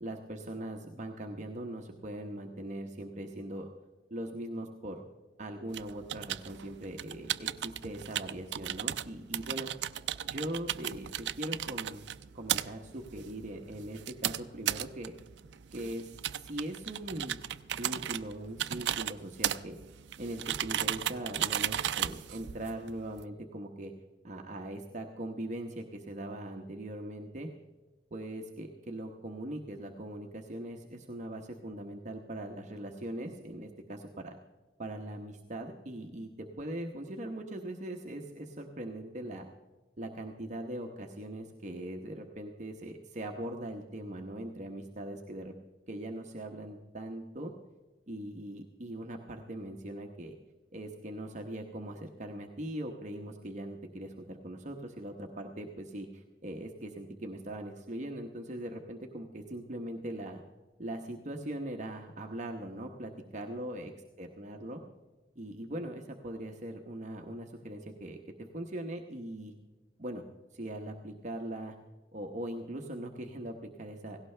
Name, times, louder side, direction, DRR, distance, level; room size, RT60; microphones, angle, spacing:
voice 1, 0.0-3.7 4.1-5.0 5.4-9.7 10.3-12.0 12.3-15.1 15.7-17.4 17.7-19.8 20.2-23.9 24.2-27.5 28.1-34.3 34.8-39.4 40.0-45.5 45.9-47.5 48.1-50.3 50.7-60.4 60.8-63.9 64.2-64.8 65.4-68.2 68.5-69.5 70.0-70.2 70.5-71.7 72.1-74.2, right 1 dB, 45° right, 2 dB, 1.0 m, -40 dB
sound 1, 5.7-23.2, right 11 dB, 80° right, 0.4 m, -36 dB
17.5 x 17.0 x 3.3 m, 1.2 s
head